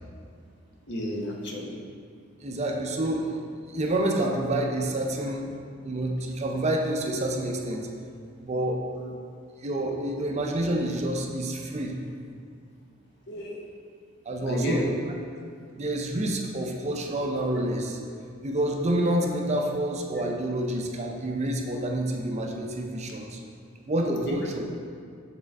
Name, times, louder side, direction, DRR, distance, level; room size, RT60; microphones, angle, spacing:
voice 1, 0.9-1.8 9.0-9.1 13.3-13.6 14.5-14.9 24.1-24.4, equal, 60° left, -2 dB, 0.9 m, -31 dB
voice 2, 2.4-3.4 3.7-5.5 5.8-7.9 8.4-8.8 9.6-12.0 14.3-14.9 15.7-18.0 18.4-23.4 23.9-24.6, right 1 dB, 35° right, 1 dB, 0.5 m, -28 dB
7.6 x 3.6 x 3.5 m, 2.3 s
head